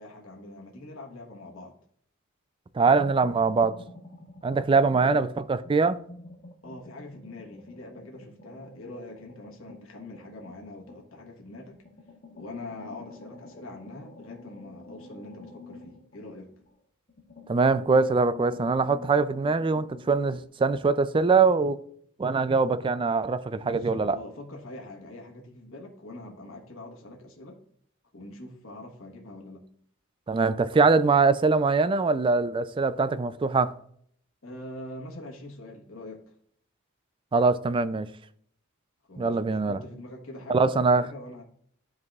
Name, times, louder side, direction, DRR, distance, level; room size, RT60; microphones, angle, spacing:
voice 1, 0.0-1.7 4.8-5.3 6.6-11.8 12.3-16.5 23.6-27.6 28.1-29.6 34.4-36.3 39.1-41.4, left 1 dB, 70° left, 1.3 m, -43 dB
voice 2, 2.7-3.8 4.4-6.0 17.5-21.8 22.2-24.2 30.3-33.7 37.3-38.1 39.2-39.8 40.5-41.1, right 4 dB, 25° right, 0.3 m, -23 dB
sound 1, 2.8-5.3 5.6-11.2 11.7-16.7 17.1-20.4, left 3 dB, 45° left, 1.4 m, -48 dB
12.0 x 4.7 x 2.4 m
head